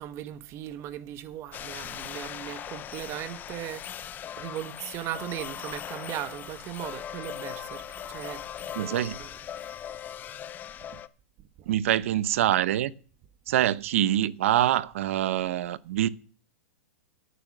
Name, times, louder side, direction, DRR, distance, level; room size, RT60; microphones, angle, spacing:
voice 1, 0.0-4.0 4.4-9.3 10.9-11.0 11.6-11.7, right 12 dB, 35° right, 1.1 m, -38 dB
sound 1, 1.5-11.1, left 10 dB, 25° left, 0.6 m, -39 dB
voice 2, 8.7-9.2 11.7-12.9 13.5-16.1, right 12 dB, 65° right, 0.7 m, -25 dB
11.0 x 9.0 x 6.1 m
hypercardioid pair, 130°, 8 cm